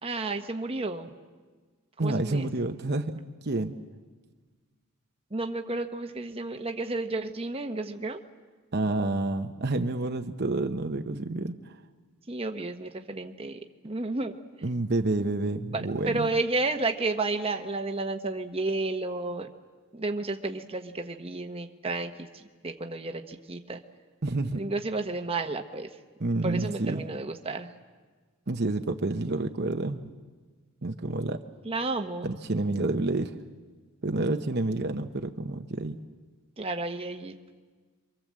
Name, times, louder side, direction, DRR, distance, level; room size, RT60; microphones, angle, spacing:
voice 1, 0.0-1.1 2.0-2.5 5.3-8.2 12.3-14.4 15.7-19.5 19.9-22.3 22.6-23.8 24.6-25.9 26.4-27.7 31.6-32.3 36.6-37.3, right 2 dB, 25° right, 5 dB, 1.1 m, -32 dB
voice 2, 2.0-3.1 3.4-3.8 8.7-11.7 14.6-16.3 24.2-24.6 26.2-27.1 28.5-30.1 30.8-31.4 32.2-33.4 34.0-36.0, right 2 dB, 45° right, 5 dB, 0.9 m, -29 dB
27.5 x 24.5 x 7.6 m, 1.4 s
head